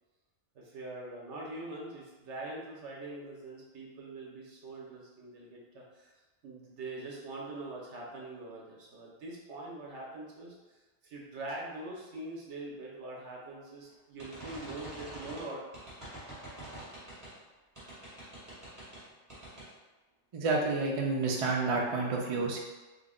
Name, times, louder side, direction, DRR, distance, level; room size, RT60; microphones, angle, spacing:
voice 1, 0.5-6.1 6.4-10.5 11.0-15.6, right 2 dB, 80° right, -3 dB, 1.1 m, -43 dB
sound 1, 14.2-17.4 17.8-19.0 19.3-19.7, right 1 dB, 15° right, 1.0 m, -46 dB
voice 2, 20.3-22.6, right 3 dB, 50° right, -1 dB, 0.4 m, -29 dB
3.6 x 2.1 x 3.7 m, 1.2 s
omnidirectional pair, 1.2 m